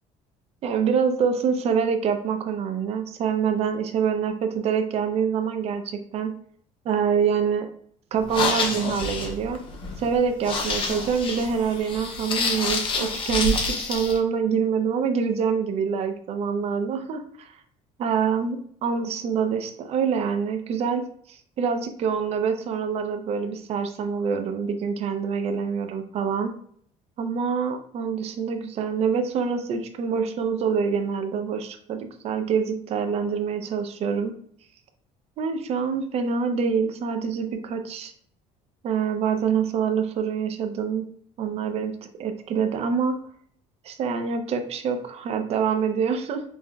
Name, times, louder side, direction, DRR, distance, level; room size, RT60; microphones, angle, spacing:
voice 1, 0.6-6.3 6.8-7.7 8.1-9.6 10.0-17.5 18.0-26.5 27.2-34.3 35.4-38.1 38.8-41.0 41.4-41.9 42.2-43.2 43.8-46.4, right 6 dB, 45° right, 7 dB, 0.5 m, -25 dB
sound 1, 8.2-14.2, left 3 dB, 35° left, 0.6 m, -28 dB
5.3 x 2.1 x 2.3 m, 0.62 s
cardioid pair, 140°, 15 cm